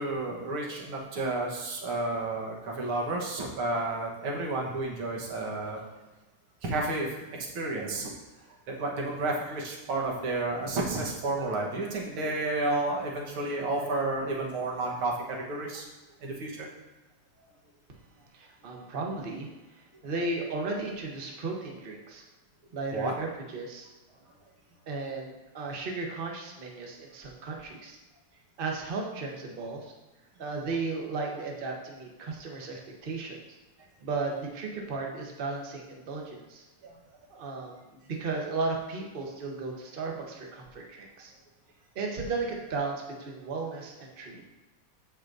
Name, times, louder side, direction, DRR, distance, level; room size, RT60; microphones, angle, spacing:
voice 1, 0.0-5.8 6.6-8.1 8.5-15.8 16.2-16.7 20.0-20.1 22.9-23.1 36.8-37.0, right 2 dB, 70° right, -2 dB, 2.2 m, -31 dB
voice 2, 18.3-22.2 22.7-23.9 24.9-28.0 28.6-29.9 30.4-33.4 34.0-36.6 37.3-41.3 41.9-44.5, right 3 dB, 40° right, 0 dB, 0.8 m, -35 dB
13.5 x 5.1 x 2.7 m, 1.1 s
omnidirectional pair, 2.4 m